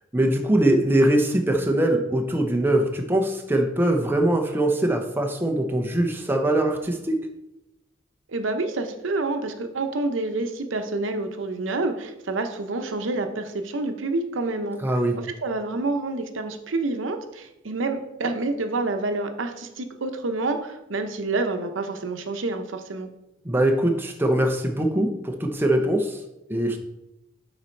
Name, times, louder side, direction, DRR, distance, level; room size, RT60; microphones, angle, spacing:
voice 1, 0.1-7.2 14.8-15.2 23.4-26.2 26.5-26.8, right 1 dB, 10° right, 3 dB, 0.6 m, -22 dB
voice 2, 8.3-14.8 15.2-23.1, right 2 dB, 90° right, 7 dB, 0.7 m, -28 dB
6.8 x 4.2 x 4.5 m, 0.91 s
head